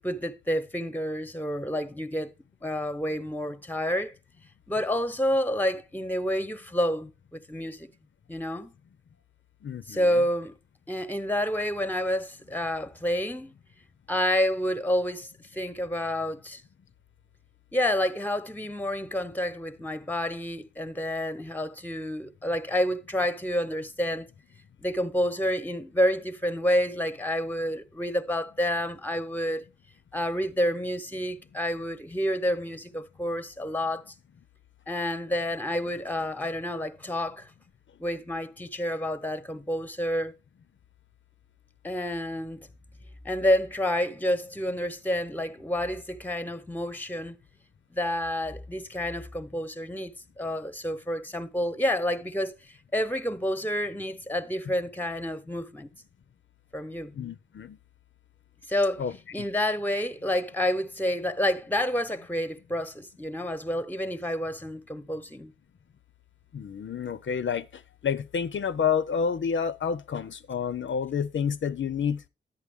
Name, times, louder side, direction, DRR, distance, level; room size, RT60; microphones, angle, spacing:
voice 1, 0.0-2.3 2.6-4.1 4.7-7.9 8.3-8.7 9.9-10.6 10.9-13.5 14.1-16.6 17.7-24.3 24.8-29.7 30.1-34.0 34.9-37.5 38.0-40.3 41.8-42.7 43.2-47.4 47.9-55.9 56.7-57.2 58.7-59.0 59.3-65.5, equal, 10° left, 0.9 m, -29 dB
voice 2, 9.6-10.1 57.1-57.8 59.0-59.4 66.5-72.2, left 7 dB, 80° left, 0.5 m, -29 dB
11.0 x 8.4 x 3.5 m
cardioid pair, 45°, 19 cm